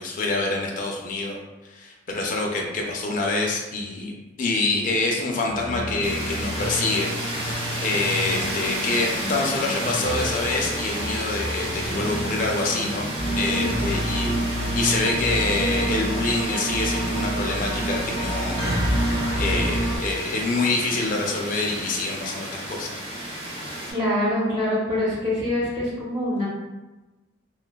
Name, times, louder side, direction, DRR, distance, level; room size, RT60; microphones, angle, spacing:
voice 1, 0.0-1.4 1.7-4.1 4.4-13.1 13.3-22.9, left 3 dB, 40° left, 0 dB, 0.4 m, -26 dB
sound 1, 5.5-16.4, equal, 85° left, 0.6 m, -33 dB
sound 2, 6.0-23.9, right 1 dB, 60° right, 1.2 m, -32 dB
sound 3, 13.2-20.0, right 1 dB, 75° right, 0.8 m, -26 dB
voice 2, 23.9-26.5, left 1 dB, 20° right, -8 dB, 0.4 m, -25 dB
3.1 x 2.1 x 2.2 m, 1.1 s
head